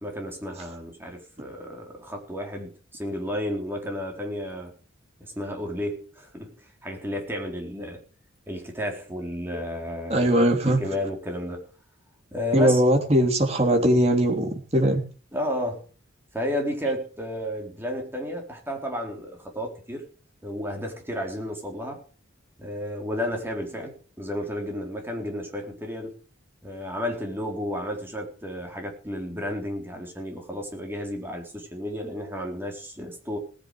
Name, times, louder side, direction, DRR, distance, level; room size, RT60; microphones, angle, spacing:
voice 1, 0.0-4.7 5.2-8.0 8.5-10.3 10.7-11.7 12.3-12.8 15.3-15.8 16.3-20.0 20.4-22.0 22.6-26.2 26.6-33.4, equal, 10° right, 1 dB, 4.0 m, -32 dB
voice 2, 10.1-10.8 12.5-15.0, equal, 30° right, 2 dB, 3.2 m, -20 dB
19.5 x 10.5 x 5.0 m, 0.38 s
head